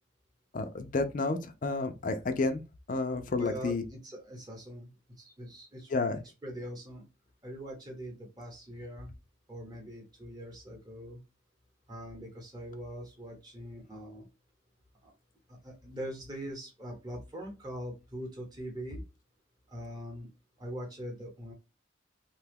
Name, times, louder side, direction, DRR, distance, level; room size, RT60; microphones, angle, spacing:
voice 1, 0.5-2.6 2.9-3.8 5.9-6.2, left 3 dB, 40° left, 0.4 m, -30 dB
voice 2, 3.4-4.9 5.2-5.9 6.4-7.0 7.4-9.1 9.5-11.2 11.9-14.3 15.0-15.1 15.5-19.0 19.7-20.3 20.6-21.5, equal, 20° right, 1.0 m, -42 dB
2.9 x 2.2 x 3.4 m
head